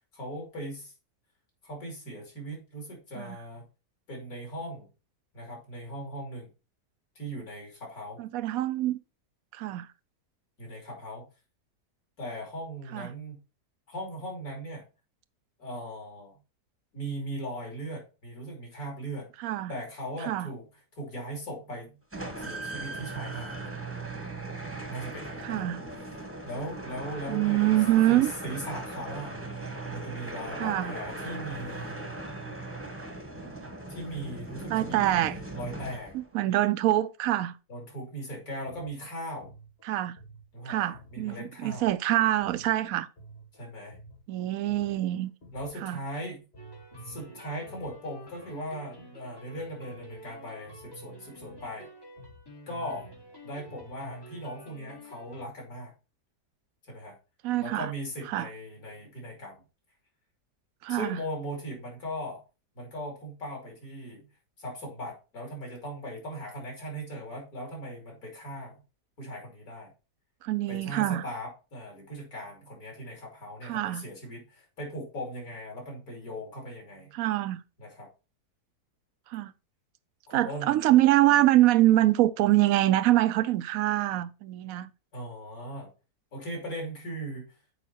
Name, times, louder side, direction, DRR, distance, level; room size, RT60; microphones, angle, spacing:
voice 1, 0.1-0.9 1.6-3.6 4.1-4.9 5.3-6.5 7.1-8.2 10.6-11.3 12.2-13.4 13.9-14.8 15.6-16.4 16.9-19.3 19.7-20.7 21.0-22.0 22.4-23.8 24.9-25.7 26.4-27.8 28.1-31.9 33.9-36.1 37.7-39.5 40.5-41.8 43.5-44.0 45.5-46.4 47.0-51.9 52.7-53.1 53.4-55.9 56.9-57.2 57.6-59.6 60.9-62.4 62.7-64.3 64.6-68.8 69.2-69.9 70.7-77.1 77.8-78.1 80.3-80.7 85.1-85.9 86.3-87.5, equal, 60° left, 3.3 m, -39 dB
voice 2, 8.2-9.0 9.5-9.9 12.9-13.1 19.4-19.7 20.2-20.5 25.4-25.8 27.3-28.3 30.6-30.9 34.7-35.4 36.1-37.5 39.8-40.2 40.7-43.1 44.3-45.3 45.8-46.0 57.4-57.9 58.3-58.5 60.8-61.2 70.4-71.2 73.6-74.1 77.1-77.6 79.3-79.5 80.3-84.9, right 15 dB, 70° right, 0.9 m, -25 dB
sound 1, 22.1-36.4, right 2 dB, 10° right, 1.0 m, -39 dB
sound 2, 38.7-46.2 46.5-54.2, right 1 dB, 35° left, 1.8 m, -53 dB
sound 3, 46.6-55.4, equal, 20° left, 0.8 m, -49 dB
6.9 x 5.1 x 4.4 m
omnidirectional pair, 1.8 m